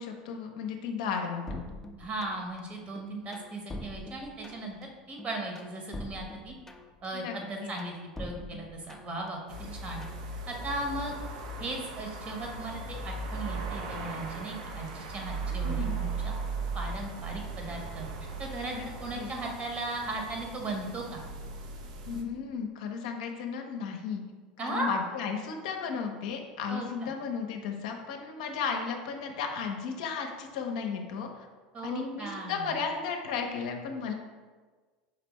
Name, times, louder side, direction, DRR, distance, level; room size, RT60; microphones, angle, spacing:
voice 1, 0.0-1.7 7.1-7.7 15.5-16.1 18.7-18.9 19.2-19.3 22.1-24.2 24.6-31.5 31.8-34.1, left 6 dB, 65° left, 3 dB, 0.6 m, -34 dB
sound 1, 1.5-2.6 2.9-4.8 5.2-7.1 7.4-9.3 9.6-10.2, left 1 dB, 10° left, 0.4 m, -43 dB
voice 2, 2.0-4.7 5.1-6.5 7.0-9.4 9.7-10.0 10.5-11.1 11.6-16.3 16.7-18.7 19.0-21.2 24.6-24.9 26.7-27.1 31.7-32.6, right 2 dB, 35° right, 1 dB, 1.0 m, -37 dB
sound 2, 9.5-22.2, right 3 dB, 65° right, 0.5 m, -37 dB
4.9 x 3.3 x 3.0 m, 1.4 s
hypercardioid pair, 80°, 4 cm